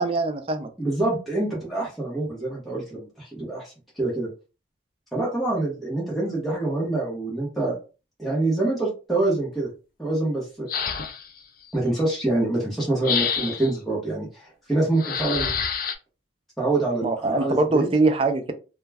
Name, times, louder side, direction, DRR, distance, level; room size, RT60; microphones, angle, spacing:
voice 1, 0.0-0.7 17.0-18.5, right 3 dB, 30° right, 8 dB, 0.3 m, -22 dB
voice 2, 0.8-4.3 5.1-7.8 8.2-9.7 10.0-10.9 11.7-15.5 16.6-17.9, right 2 dB, ahead, -6 dB, 0.8 m, -26 dB
sound 1, 10.7-11.4 13.0-13.8 15.0-15.9, left 7 dB, 45° left, 0.3 m, -27 dB
2.2 x 2.1 x 3.3 m, 0.33 s
head